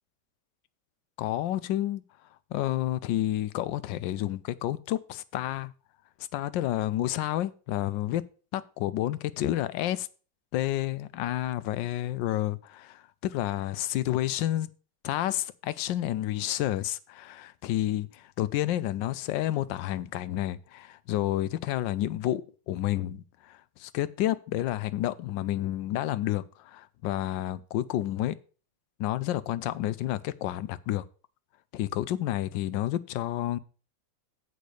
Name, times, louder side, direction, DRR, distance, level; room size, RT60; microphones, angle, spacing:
voice 1, 1.2-2.0 2.5-5.7 6.3-8.2 8.5-10.1 10.5-14.7 15.0-28.4 29.0-31.0 31.7-33.6, left 13 dB, 80° left, 1.3 m, -30 dB
8.5 x 5.2 x 6.3 m
omnidirectional pair, 2.0 m